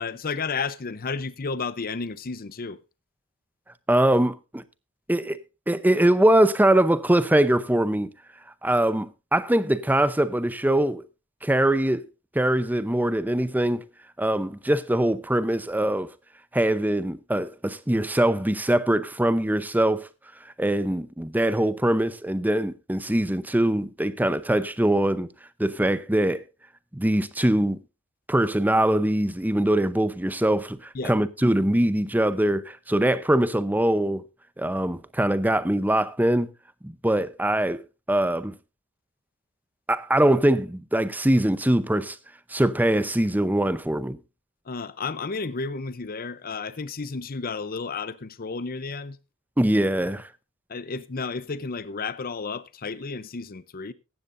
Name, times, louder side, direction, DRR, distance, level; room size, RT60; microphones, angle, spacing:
voice 1, 0.0-2.8 30.9-31.1 44.7-49.2 50.7-53.9, left 4 dB, 45° left, 0.7 m, -32 dB
voice 2, 3.9-4.6 5.1-5.4 5.7-8.1 8.6-11.0 11.4-12.1 12.3-13.8 14.2-16.1 16.5-20.1 20.4-25.3 25.6-26.4 26.9-27.8 28.3-34.2 34.6-36.5 36.8-37.8 38.1-38.5 39.9-42.2 42.5-44.2 49.6-50.3, right 1 dB, 10° right, 0.7 m, -22 dB
16.0 x 12.5 x 2.6 m
head